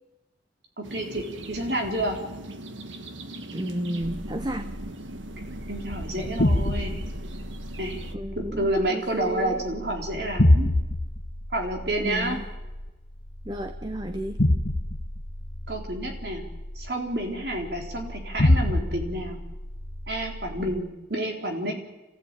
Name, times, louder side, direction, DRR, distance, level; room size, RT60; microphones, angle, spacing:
voice 1, 0.8-2.2 5.7-7.0 7.8-8.0 8.6-10.7 11.5-12.4 15.7-16.5 16.8-19.4 20.1-21.7, right 1 dB, 55° right, 2 dB, 3.9 m, -29 dB
sound 1, 0.8-8.2, right 1 dB, 85° right, 1.6 m, -40 dB
voice 2, 3.5-4.7 8.1-9.6 12.0-12.5 13.4-14.4, right 1 dB, 20° right, 8 dB, 0.8 m, -32 dB
sound 2, 4.0-20.8, left 1 dB, 60° left, 1.5 m, -28 dB
26.5 x 15.5 x 9.0 m, 1.1 s
head